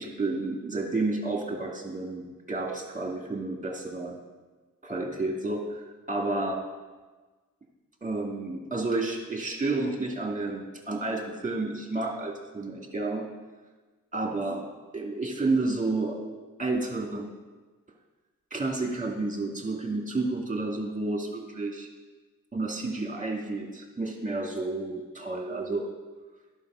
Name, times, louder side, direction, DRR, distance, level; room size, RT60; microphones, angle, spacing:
voice 1, 0.0-4.2 4.8-6.6 8.0-13.3 14.1-16.2 16.6-17.3 18.5-21.9 22.5-25.9, right 2 dB, 20° right, 0 dB, 2.0 m, -31 dB
11.0 x 4.9 x 6.1 m, 1.3 s
cardioid pair, 45°, 34 cm